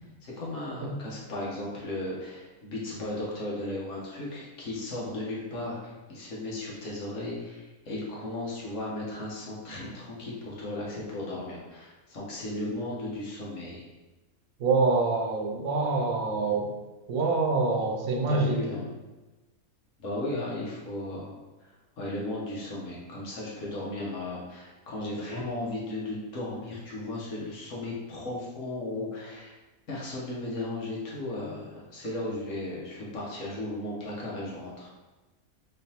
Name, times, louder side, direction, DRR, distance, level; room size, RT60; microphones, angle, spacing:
voice 1, 0.2-13.9 17.8-17.9 18.3-18.9 20.0-21.3 22.0-29.6 29.9-34.9, left 2 dB, 65° left, -5 dB, 1.3 m, -35 dB
voice 2, 14.6-16.7 17.1-18.6, right 3 dB, 75° right, 1 dB, 1.0 m, -26 dB
3.8 x 3.3 x 2.8 m, 1.2 s
omnidirectional pair, 1.5 m